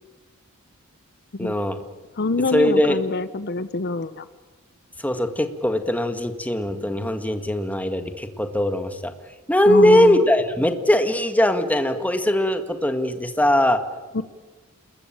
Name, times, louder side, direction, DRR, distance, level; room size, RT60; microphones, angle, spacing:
voice 1, 1.4-1.8 2.5-3.0 5.0-9.1 9.5-13.8, left 1 dB, 5° left, 7 dB, 1.7 m, -20 dB
voice 2, 2.2-4.3 9.7-10.2 14.1-14.2, left 3 dB, 50° left, 13 dB, 0.7 m, -25 dB
28.0 x 21.0 x 8.9 m, 1.3 s
head